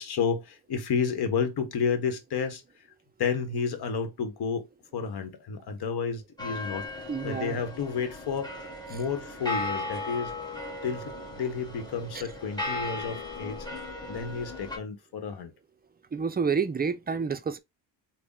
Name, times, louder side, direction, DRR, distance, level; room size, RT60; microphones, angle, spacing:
voice 1, 0.0-2.6 3.2-4.7 4.9-8.5 8.9-10.3 10.8-13.7 14.1-15.5, left 6 dB, 60° left, 1.0 m, -31 dB
sound 1, 6.4-14.8, left 2 dB, 10° left, 1.4 m, -37 dB
voice 2, 7.1-7.6 16.1-17.6, right 5 dB, 20° right, 0.4 m, -29 dB
3.4 x 2.2 x 3.7 m
cardioid pair, 80°, 44 cm